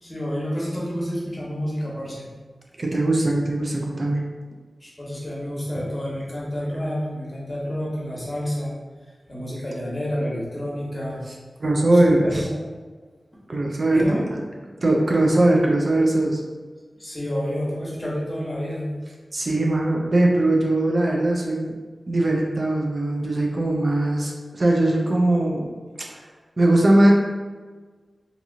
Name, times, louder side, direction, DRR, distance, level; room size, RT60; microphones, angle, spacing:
voice 1, 0.0-2.2 4.8-8.7 9.3-11.2 11.9-12.6 13.9-14.2 17.0-18.9, equal, 35° left, -6 dB, 1.1 m, -29 dB
voice 2, 2.8-4.2 11.6-12.4 13.5-14.2 14.8-16.4 19.3-21.8 22.1-25.7 26.6-27.1, right 1 dB, 55° right, -1 dB, 0.4 m, -20 dB
2.7 x 2.6 x 2.5 m, 1.4 s
cardioid pair, 45°, 0 cm